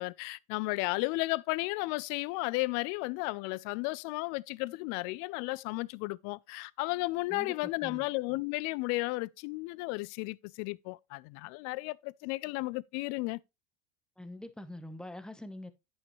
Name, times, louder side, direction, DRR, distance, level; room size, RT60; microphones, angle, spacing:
voice 1, 0.0-13.4, left 23 dB, 55° left, 0.5 m, -34 dB
voice 2, 7.3-8.0 14.2-15.7, left 1 dB, ahead, 0.8 m, -44 dB
9.4 x 5.6 x 3.1 m
hypercardioid pair, 85°, 33 cm